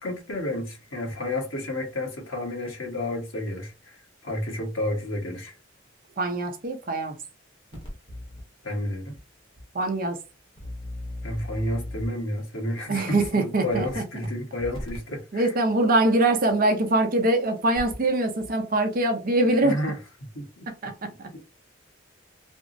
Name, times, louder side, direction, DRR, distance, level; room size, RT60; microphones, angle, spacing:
voice 1, 0.0-5.6 8.6-9.2 11.2-15.5 19.6-20.0 20.3-20.6, left 1 dB, 90° left, 1.3 m, -31 dB
voice 2, 6.2-7.2 9.7-10.2 12.9-14.0 15.3-19.8 20.7-21.3, right 2 dB, 45° right, 0.6 m, -23 dB
sound 1, 7.7-8.4 9.1-9.2 9.6-9.7 10.5-12.2 13.2-13.3 13.7-14.3 14.6-15.0 16.5-16.6 17.6-18.1 18.4-18.5, left 1 dB, 25° left, 0.9 m, -37 dB
3.4 x 2.0 x 2.6 m
head